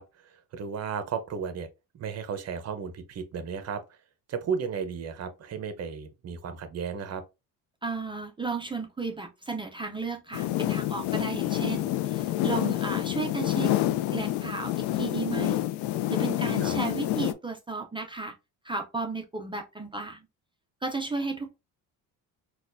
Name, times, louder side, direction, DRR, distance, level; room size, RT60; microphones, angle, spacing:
voice 1, 0.0-1.7 1.9-4.0 4.3-7.2 16.6-16.8, right 6 dB, 40° right, 0.8 m, -34 dB
voice 2, 7.8-13.8 14.1-15.6 16.1-18.3 18.6-20.3 20.8-21.6, right 4 dB, 15° right, 0.5 m, -34 dB
sound 1, 10.3-17.3, left 14 dB, 85° left, 0.5 m, -28 dB
4.0 x 2.4 x 2.5 m
cardioid pair, 120°, 40 cm